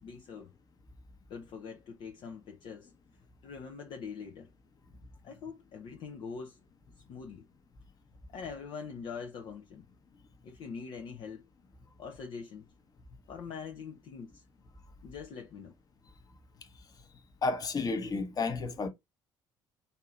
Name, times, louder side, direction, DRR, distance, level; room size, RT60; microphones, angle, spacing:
voice 1, 0.0-0.5 1.3-2.9 3.4-4.5 5.2-6.6 7.0-7.5 8.3-9.8 10.4-11.4 12.0-12.7 13.3-14.4 15.0-15.7, left 5 dB, 50° left, 0.8 m, -43 dB
voice 2, 17.4-18.9, left 3 dB, 35° left, 1.1 m, -31 dB
5.5 x 2.8 x 2.4 m
figure-of-eight pair, 55°, 11 cm